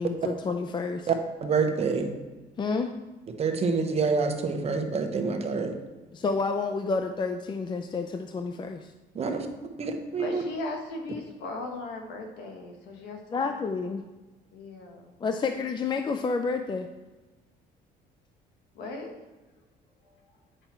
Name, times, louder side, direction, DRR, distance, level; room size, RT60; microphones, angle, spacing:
voice 1, 0.0-1.1 2.6-2.9 6.1-8.9 13.3-14.0 15.2-16.9, left 4 dB, 25° left, 6 dB, 0.5 m, -29 dB
voice 2, 1.1-2.2 3.4-5.7 9.1-9.5 9.8-10.4, right 4 dB, 40° right, 5 dB, 1.1 m, -27 dB
voice 3, 10.2-13.2 14.5-15.1 18.7-19.2 20.0-20.1, left 2 dB, 85° left, 3 dB, 1.5 m, -37 dB
8.9 x 5.9 x 4.4 m, 1.2 s
cardioid pair, 110°, 17 cm